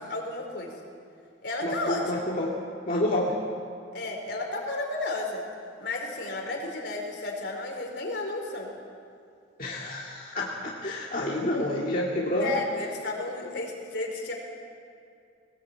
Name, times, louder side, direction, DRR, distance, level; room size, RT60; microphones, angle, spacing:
voice 1, 0.1-0.7 1.4-2.3 3.9-5.4 5.8-8.7 12.4-14.3, left 2 dB, 70° left, 1 dB, 4.6 m, -32 dB
voice 2, 1.6-2.6 2.9-3.4 9.6-12.6, left 1 dB, 45° left, -4 dB, 2.3 m, -29 dB
21.0 x 19.5 x 8.7 m, 2.4 s
head